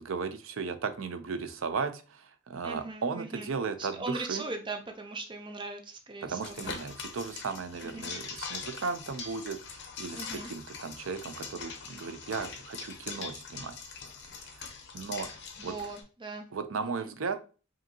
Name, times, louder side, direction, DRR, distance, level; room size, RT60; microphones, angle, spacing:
voice 1, 0.0-4.4 6.2-13.8 14.3-14.7 14.9-15.3 15.6-15.7 16.5-17.4, right 5 dB, 80° right, 10 dB, 0.5 m, -36 dB
voice 2, 2.6-3.5 3.8-6.7 7.8-8.1 10.1-10.5 15.6-16.5 16.8-17.1, right 3 dB, 25° right, 5 dB, 0.5 m, -39 dB
sound 1, 6.4-16.0, left 5 dB, 60° left, 0.8 m, -42 dB
5.0 x 2.7 x 2.7 m, 0.35 s
head